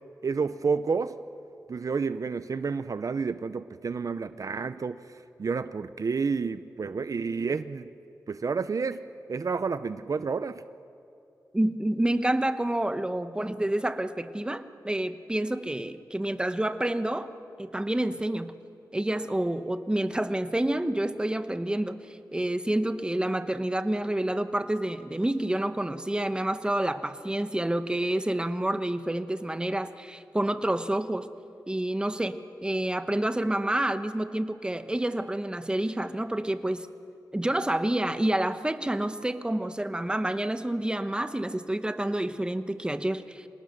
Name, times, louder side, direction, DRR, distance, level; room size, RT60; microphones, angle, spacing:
voice 1, 0.2-1.2 1.7-7.9 8.3-9.0 9.3-10.6, right 5 dB, 55° right, 13 dB, 0.6 m, -30 dB
voice 2, 11.5-17.3 17.6-18.5 18.9-22.0 22.3-31.3 31.7-36.9 37.3-43.5, right 1 dB, 15° right, 10 dB, 1.0 m, -28 dB
26.0 x 18.5 x 6.6 m, 2.6 s
cardioid pair, 65°, 7 cm